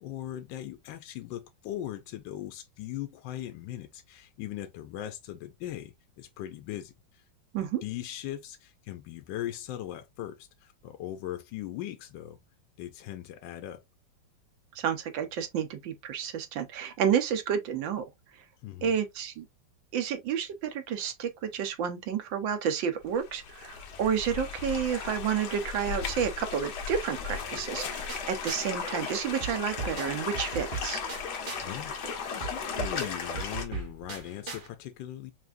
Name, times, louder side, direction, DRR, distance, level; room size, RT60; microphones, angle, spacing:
voice 1, 0.0-7.2 7.8-12.4 12.8-13.8 18.6-18.9 31.2-35.3, left 13 dB, 80° left, 1.3 m, -39 dB
voice 2, 14.7-18.0 18.8-19.5 19.9-31.0, right 8 dB, 85° right, 1.6 m, -30 dB
sound 1, 23.0-33.7, left 6 dB, 60° left, 1.4 m, -36 dB
sound 2, 28.1-28.8 29.0-31.8 32.0-34.7, right 4 dB, 40° right, 0.7 m, -39 dB
5.9 x 2.7 x 2.5 m
omnidirectional pair, 2.0 m